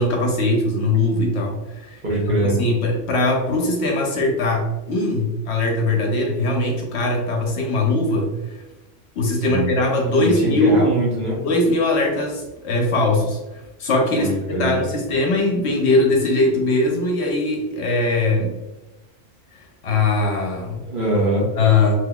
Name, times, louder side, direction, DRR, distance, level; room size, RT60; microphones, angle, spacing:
voice 1, 0.0-8.6 9.2-10.8 11.4-18.6 19.8-20.8 21.6-21.9, left 2 dB, 65° left, 1 dB, 0.8 m, -21 dB
voice 2, 2.0-2.6 9.4-9.7 10.2-11.4 14.2-14.8 20.8-21.5, right 1 dB, 45° right, -4 dB, 0.9 m, -22 dB
3.7 x 2.9 x 2.2 m, 1.0 s
omnidirectional pair, 1.3 m